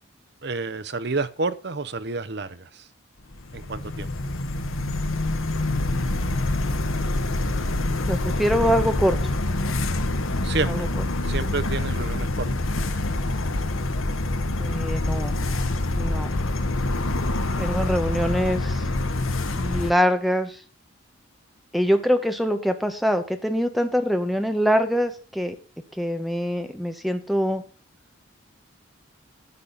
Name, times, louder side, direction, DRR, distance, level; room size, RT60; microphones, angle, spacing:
voice 1, 0.4-2.9 3.5-4.1 10.4-10.9 11.2-12.5, right 3 dB, 55° right, 0.8 m, -29 dB
sound 1, 3.3-19.9, left 2 dB, 90° left, 1.2 m, -26 dB
voice 2, 8.1-9.2 10.7-10.9 14.6-15.4 16.0-16.3 17.6-18.8 19.5-20.6 21.7-25.5 26.0-27.6, equal, ahead, 1.2 m, -24 dB
11.0 x 8.5 x 4.0 m
head